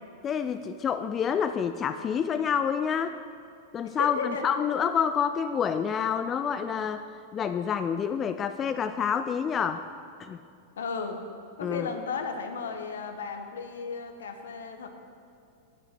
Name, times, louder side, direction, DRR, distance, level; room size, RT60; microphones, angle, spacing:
voice 1, 0.2-3.2 3.7-7.0 7.3-9.8 10.2-10.4 11.6-11.9, left 7 dB, 30° left, 10 dB, 0.3 m, -28 dB
voice 2, 3.9-4.5 10.8-11.2 11.6-14.9, left 5 dB, 75° left, 6 dB, 0.9 m, -34 dB
8.7 x 6.1 x 6.0 m, 2.4 s
hypercardioid pair, 100°, 0 cm